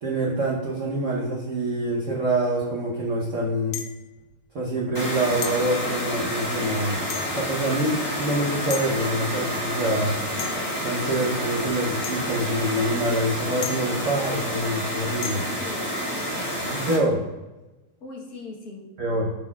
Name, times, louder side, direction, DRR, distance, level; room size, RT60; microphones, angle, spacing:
voice 1, 0.0-3.8 4.5-7.0 7.3-10.1 10.8-15.4 16.6-17.2 19.0-19.3, right 1 dB, 50° right, -3 dB, 1.0 m, -26 dB
sound 1, 3.7-4.1 5.4-5.7 7.1-7.5 8.7-8.9 10.4-10.8 12.0-12.3 13.6-14.0 15.2-15.6, left 8 dB, 80° left, 1.4 m, -34 dB
sound 2, 4.9-17.0, equal, 10° left, 1.2 m, -29 dB
voice 2, 15.4-16.9 18.0-18.8, left 3 dB, 50° left, -1 dB, 1.5 m, -41 dB
12.0 x 4.1 x 2.4 m, 1.1 s
omnidirectional pair, 2.3 m